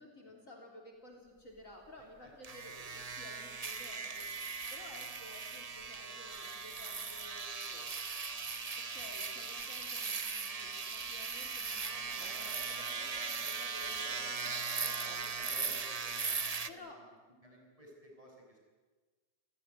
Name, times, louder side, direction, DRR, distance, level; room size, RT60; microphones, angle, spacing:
voice 1, 0.0-8.2 8.8-15.7 16.7-17.0, left 1 dB, 45° left, 1 dB, 3.8 m, -54 dB
voice 2, 2.0-2.3 2.6-2.7 15.3-17.0 17.4-18.6, right 1 dB, 15° right, 0 dB, 6.8 m, -56 dB
sound 1, 2.4-16.7, right 4 dB, 35° right, 0.6 m, -39 dB
sound 2, 11.9-15.8, right 6 dB, 65° right, 2.1 m, -54 dB
29.5 x 17.5 x 9.5 m, 1.3 s
omnidirectional pair, 2.0 m